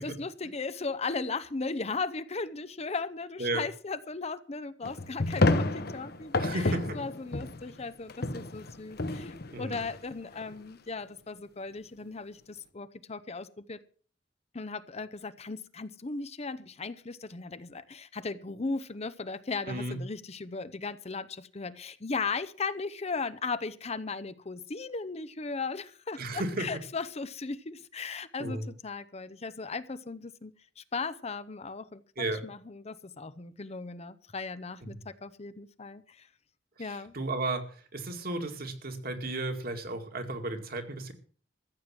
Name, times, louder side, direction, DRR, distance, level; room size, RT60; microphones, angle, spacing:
voice 1, 0.0-13.8 14.5-32.0 32.4-36.3 36.8-37.1, left 4 dB, 35° left, 14 dB, 0.7 m, -37 dB
sound 1, 4.8-7.8 8.1-10.5, left 2 dB, 55° left, 1.1 m, -30 dB
voice 2, 6.4-7.0 9.5-9.8 19.7-20.0 26.2-26.7 28.4-28.7 32.2-32.4 34.8-35.0 36.8-41.1, right 2 dB, 55° right, 6 dB, 2.2 m, -34 dB
14.5 x 8.0 x 7.5 m, 0.43 s
head